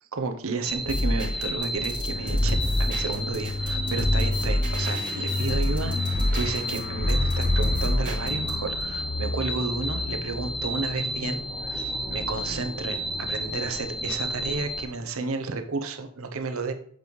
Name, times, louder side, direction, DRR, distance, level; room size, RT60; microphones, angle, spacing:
voice 1, 0.1-16.7, right 3 dB, 65° right, 7 dB, 0.7 m, -32 dB
sound 1, 0.6-14.9, equal, ahead, 0.6 m, -32 dB
sound 2, 0.8-8.8, equal, 40° right, 2.2 m, -28 dB
sound 3, 2.1-14.5 14.8-15.0, left 3 dB, 45° left, 0.5 m, -33 dB
7.3 x 5.2 x 3.1 m, 0.62 s
head